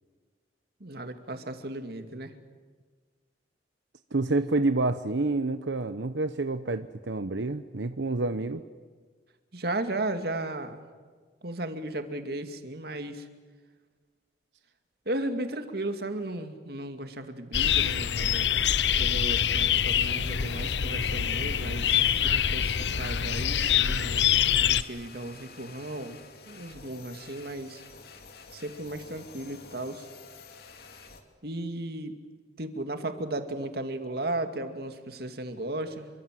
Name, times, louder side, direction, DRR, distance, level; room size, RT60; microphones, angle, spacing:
voice 1, 0.8-2.3 9.5-10.8 11.4-13.3 15.1-18.5 19.0-27.8 28.5-30.1 31.4-32.1 32.6-36.1, right 1 dB, 60° right, 7 dB, 2.4 m, -35 dB
voice 2, 4.1-8.6, right 2 dB, 90° right, 10 dB, 1.0 m, -28 dB
sound 1, 17.5-24.8, left 9 dB, 75° left, 0.8 m, -25 dB
sound 2, 24.2-31.2, left 4 dB, 60° left, 2.7 m, -49 dB
28.0 x 24.5 x 7.7 m, 1.5 s
head